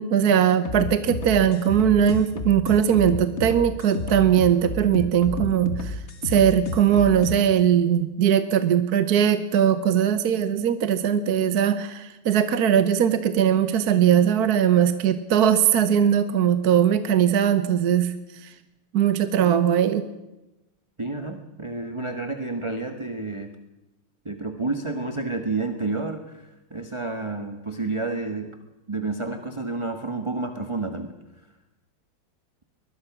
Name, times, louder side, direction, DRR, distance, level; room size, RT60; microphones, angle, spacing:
voice 1, 0.0-18.5 18.9-20.1, right 9 dB, 55° right, 11 dB, 1.3 m, -20 dB
sound 1, 0.6-7.4, left 3 dB, 35° left, 1.6 m, -31 dB
voice 2, 21.0-23.5 24.2-28.5 28.9-31.1, right 3 dB, 15° right, 6 dB, 1.2 m, -30 dB
23.0 x 20.5 x 6.1 m, 0.99 s
omnidirectional pair, 2.3 m